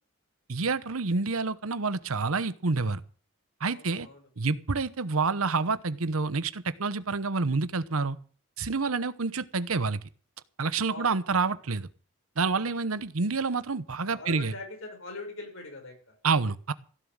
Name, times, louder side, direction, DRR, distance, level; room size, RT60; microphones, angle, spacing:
voice 1, 0.5-3.0 3.6-4.1 4.4-8.2 8.6-10.0 10.6-11.9 12.4-14.5 16.2-16.7, right 4 dB, 90° right, 15 dB, 1.0 m, -28 dB
voice 2, 3.6-4.2 10.9-11.1 11.4-11.5 12.5-12.7 14.0-16.2, left 2 dB, 70° left, 2 dB, 6.5 m, -42 dB
16.0 x 7.4 x 8.8 m, 0.40 s
head